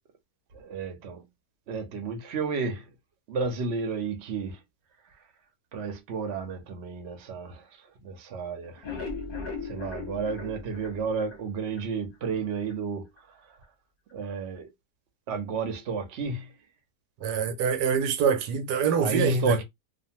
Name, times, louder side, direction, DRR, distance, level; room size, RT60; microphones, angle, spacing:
voice 1, 0.5-1.2 1.7-2.9 3.3-4.6 5.7-8.9 9.6-13.1 13.5-13.6 14.1-14.7 15.3-16.5 19.0-19.6, right 4 dB, 55° right, 0.8 m, -32 dB
sound 1, 8.6-11.9 12.2-12.3 12.7-12.8 13.2-13.3, left 4 dB, 40° left, 0.9 m, -38 dB
voice 2, 17.2-19.6, right 7 dB, 80° right, 1.2 m, -25 dB
2.5 x 2.5 x 2.7 m
omnidirectional pair, 1.7 m